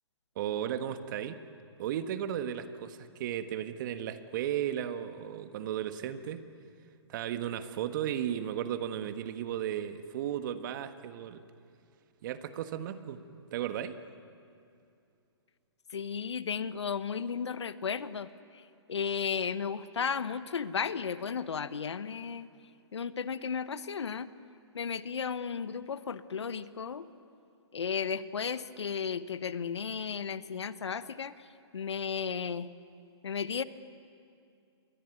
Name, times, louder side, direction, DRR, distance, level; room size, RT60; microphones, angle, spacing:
voice 1, 0.3-1.4 1.8-6.5 7.1-11.4 12.2-13.2 13.5-14.0, right 10 dB, 45° right, 9 dB, 1.5 m, -35 dB
voice 2, 15.9-18.3 18.5-18.6 18.9-22.5 22.9-24.3 24.7-27.0 27.7-31.3 31.7-32.7 33.2-33.6, left 6 dB, 75° left, 14 dB, 1.1 m, -34 dB
28.5 x 22.0 x 9.3 m, 2.5 s
hypercardioid pair, 135°, 14 cm